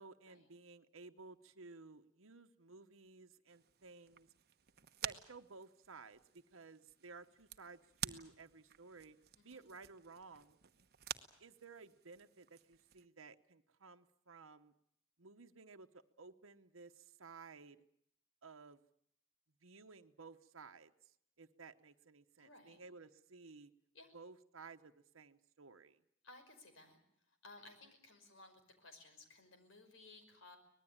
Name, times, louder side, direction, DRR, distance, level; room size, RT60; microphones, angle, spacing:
voice 1, 0.0-4.3 5.0-9.2 9.4-10.6 11.4-14.7 15.2-17.8 18.4-18.8 19.6-23.7 24.1-26.0, right 4 dB, 85° right, 7 dB, 1.1 m, -56 dB
sound 1, 3.5-13.1, right 10 dB, 55° right, 1.1 m, -50 dB
voice 2, 9.4-9.7 22.4-22.8 23.9-24.1 26.2-27.0 27.3-30.6, left 2 dB, 70° left, 7 dB, 5.5 m, -59 dB
24.5 x 19.5 x 8.8 m, 0.70 s
head